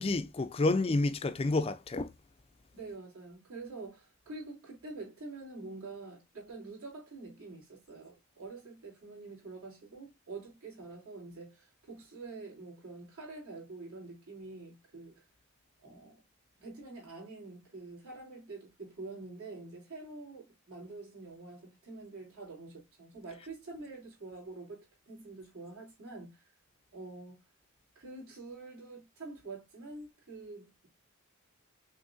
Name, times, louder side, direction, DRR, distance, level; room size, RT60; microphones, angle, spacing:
voice 1, 0.0-2.1, left 2 dB, 25° left, 0.4 m, -29 dB
voice 2, 2.7-15.2 15.8-16.2 16.6-26.5 26.9-27.4 27.9-30.9, right 3 dB, 75° right, 3.2 m, -46 dB
6.3 x 3.1 x 2.6 m
head